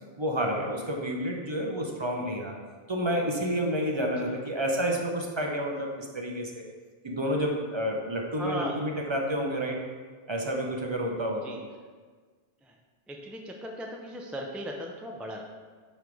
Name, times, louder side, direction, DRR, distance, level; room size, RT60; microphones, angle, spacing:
voice 1, 0.2-2.5 2.9-6.5 7.0-9.8 10.3-11.4, equal, 30° right, 0 dB, 0.7 m, -29 dB
voice 2, 8.4-8.8 11.4-11.6 12.6-12.8 13.1-15.4, equal, ahead, 0 dB, 0.3 m, -37 dB
8.1 x 3.2 x 5.2 m, 1.5 s
omnidirectional pair, 1.1 m